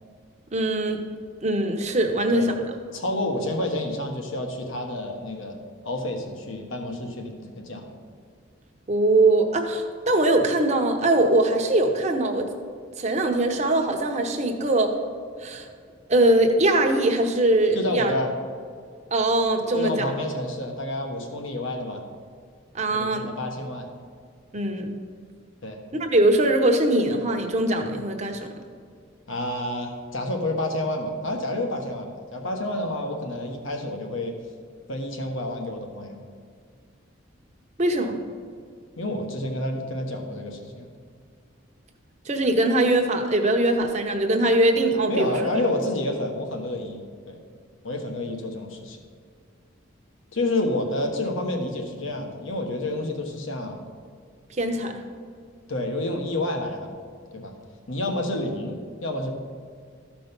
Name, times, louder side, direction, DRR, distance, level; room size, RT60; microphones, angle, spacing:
voice 1, 0.5-1.0 1.4-2.6 8.9-12.5 13.0-14.9 15.4-15.7 16.1-18.1 19.1-20.1 22.7-23.3 24.5-25.0 26.0-28.5 37.8-38.2 42.3-45.3 54.6-55.0, right 1 dB, 35° right, 4 dB, 0.9 m, -21 dB
voice 2, 2.9-7.9 17.7-18.3 19.7-22.0 22.9-23.9 25.6-25.8 29.3-34.4 34.9-36.2 39.0-40.9 45.1-47.4 47.8-49.0 50.3-53.9 55.7-57.0 57.3-57.5 57.9-59.3, left 1 dB, 75° left, 3 dB, 1.3 m, -29 dB
13.5 x 5.1 x 5.3 m, 2.1 s
head